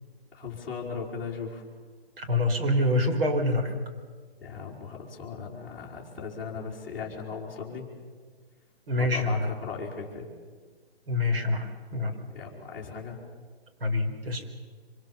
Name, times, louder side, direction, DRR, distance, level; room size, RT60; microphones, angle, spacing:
voice 1, 0.3-1.6 4.4-7.9 8.9-10.3 12.3-13.2, left 5 dB, 5° left, -9 dB, 4.0 m, -37 dB
voice 2, 2.2-3.7 8.9-9.5 11.1-12.1 13.8-14.4, left 2 dB, 60° right, 5 dB, 4.8 m, -26 dB
25.5 x 25.0 x 7.2 m, 1.5 s
hypercardioid pair, 160°, 32 cm